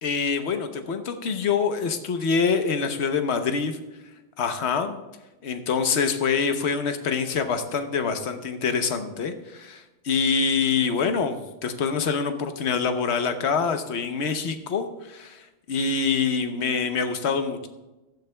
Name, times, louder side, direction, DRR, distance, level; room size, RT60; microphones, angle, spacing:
voice 1, 0.0-3.8 4.4-5.0 5.4-17.7, left 5 dB, 75° left, 7 dB, 1.2 m, -25 dB
15.5 x 11.5 x 2.2 m, 1.1 s
omnidirectional pair, 1.2 m